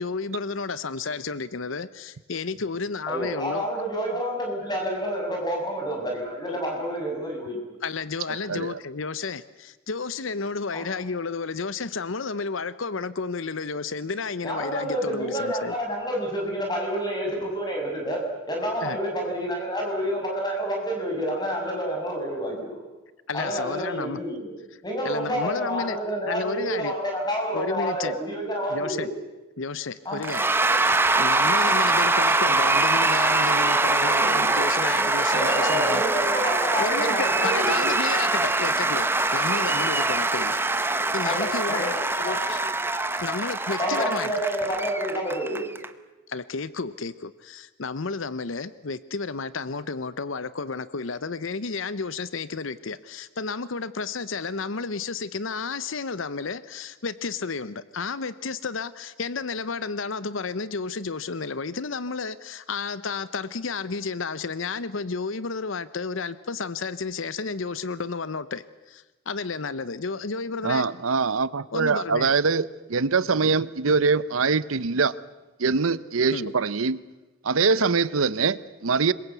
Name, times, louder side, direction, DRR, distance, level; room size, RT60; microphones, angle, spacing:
voice 1, 0.0-3.7 6.5-6.6 7.8-15.7 18.8-19.0 23.3-24.2 25.0-26.0 26.2-26.9 27.5-28.2 28.7-29.1 29.6-36.0 36.8-42.6 43.2-44.3 46.3-70.9 71.7-72.3 76.3-76.5, left 4 dB, 75° left, 16 dB, 0.8 m, -32 dB
voice 2, 3.1-7.6 10.7-10.9 14.4-18.2 18.5-22.8 23.3-24.5 24.8-29.1 30.0-30.2 31.6-31.7 35.3-37.9 41.2-42.3 43.8-45.6, equal, 20° left, 1 dB, 6.2 m, -29 dB
Cheering / Applause / Crowd, 30.2-45.9, right 2 dB, 10° right, 1.0 m, -23 dB
voice 3, 70.6-75.1 75.6-77.0 77.4-79.1, right 4 dB, 90° right, 17 dB, 0.8 m, -23 dB
26.5 x 22.5 x 8.1 m, 1.1 s
head